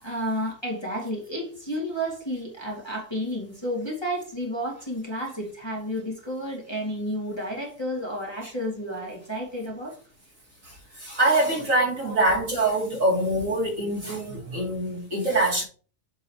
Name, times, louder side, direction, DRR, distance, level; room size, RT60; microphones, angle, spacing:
voice 1, 0.0-10.0 12.0-12.2, equal, 15° left, 2.1 m, -31 dB
voice 2, 11.0-15.6, right 2 dB, 50° right, 3.1 m, -24 dB
7.8 x 6.8 x 2.9 m
omnidirectional pair, 1.7 m